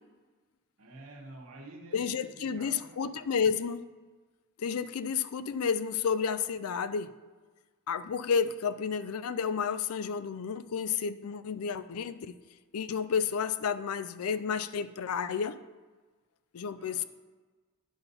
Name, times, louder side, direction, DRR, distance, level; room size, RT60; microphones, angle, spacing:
voice 1, 0.8-3.3 16.8-17.0, right 2 dB, 85° right, 1.3 m, -49 dB
voice 2, 1.9-3.9 4.6-7.1 7.9-12.3 12.7-15.6 16.5-17.0, left 6 dB, 80° left, 0.4 m, -31 dB
10.0 x 4.2 x 5.5 m
head